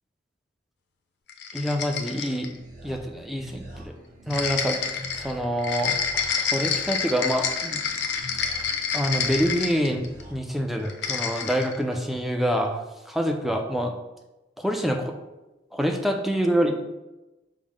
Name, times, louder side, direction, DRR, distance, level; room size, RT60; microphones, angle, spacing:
sound 1, 1.3-2.6 4.3-10.2 10.8-11.8, left 6 dB, 70° left, 0.5 m, -28 dB
voice 1, 1.5-2.5 2.8-3.9 4.3-4.8 5.2-7.8 8.9-10.0 10.3-13.9 14.6-15.2 15.7-16.8, equal, ahead, 3 dB, 0.4 m, -26 dB
sound 2, 2.1-10.3, equal, 50° right, 0.8 m, -44 dB
5.5 x 2.0 x 4.8 m, 1.0 s
head